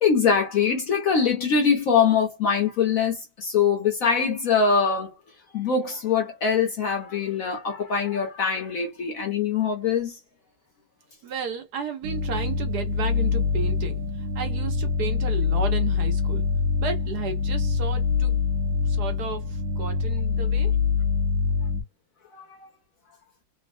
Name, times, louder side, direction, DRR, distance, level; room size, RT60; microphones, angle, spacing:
voice 1, 0.0-5.1 5.5-10.2 22.3-22.7, left 6 dB, 60° left, 1.0 m, -23 dB
voice 2, 11.2-16.5 16.8-18.4 18.9-20.7, right 6 dB, 65° right, 1.1 m, -33 dB
sound 1, 12.0-21.8, left 5 dB, 85° right, 0.7 m, -25 dB
3.2 x 2.0 x 2.5 m
omnidirectional pair, 2.0 m